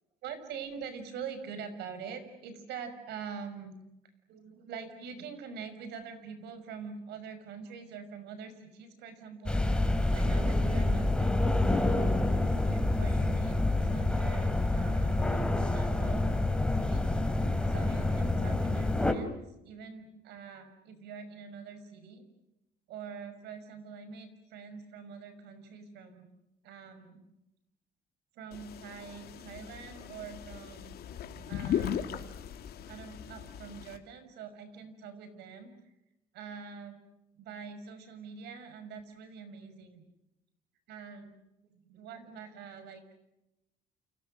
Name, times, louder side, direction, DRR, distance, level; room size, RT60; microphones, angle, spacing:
voice 1, 0.2-3.7 4.3-9.6 10.1-12.2 12.6-16.3 16.8-17.1 17.6-22.2 22.9-26.3 26.6-27.2 28.4-32.3 32.9-35.7 36.3-37.0 37.4-40.0 40.9-41.4 41.7-43.2, right 6 dB, 80° right, 10 dB, 5.7 m, -45 dB
sound 1, 9.5-19.1, left 2 dB, 5° left, 3.0 m, -27 dB
sound 2, 28.5-34.0, left 9 dB, 70° left, 2.7 m, -38 dB
30.0 x 29.0 x 6.5 m, 0.91 s
cardioid pair, 110°, 17 cm